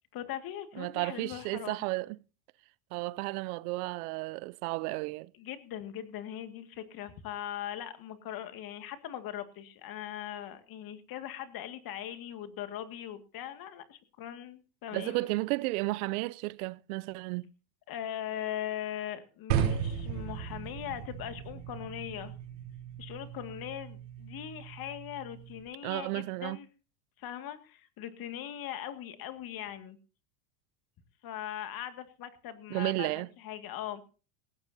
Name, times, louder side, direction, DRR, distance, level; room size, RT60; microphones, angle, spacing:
voice 1, 0.1-1.8 5.4-15.3 17.9-22.3 23.0-26.7 27.2-30.0 31.2-34.0, left 11 dB, 45° left, 2.1 m, -40 dB
voice 2, 0.8-2.2 2.9-5.3 14.9-17.5 25.8-26.6 32.7-33.3, right 22 dB, 60° right, 0.7 m, -33 dB
sound 1, 19.5-25.6, right 8 dB, 80° right, 3.8 m, -36 dB
18.5 x 16.5 x 2.7 m
hypercardioid pair, 105°, 50 cm